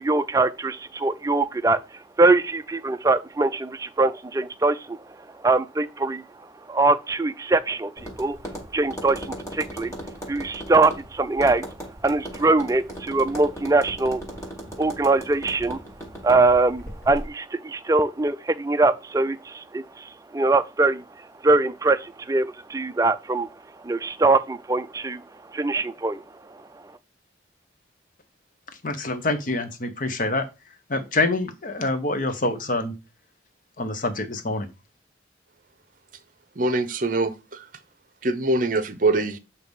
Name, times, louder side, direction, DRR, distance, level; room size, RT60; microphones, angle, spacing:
voice 1, 0.0-10.0 10.2-14.2 14.8-15.8 16.2-26.9, right 3 dB, 15° right, 0.4 m, -23 dB
Tap, 8.0-17.3, equal, 15° left, 1.7 m, -38 dB
voice 2, 28.8-30.5 30.9-33.0 33.8-34.7, left 2 dB, 45° left, 0.9 m, -26 dB
voice 3, 36.6-37.6 38.2-39.4, right 2 dB, 45° right, 0.7 m, -23 dB
7.9 x 2.8 x 5.3 m
head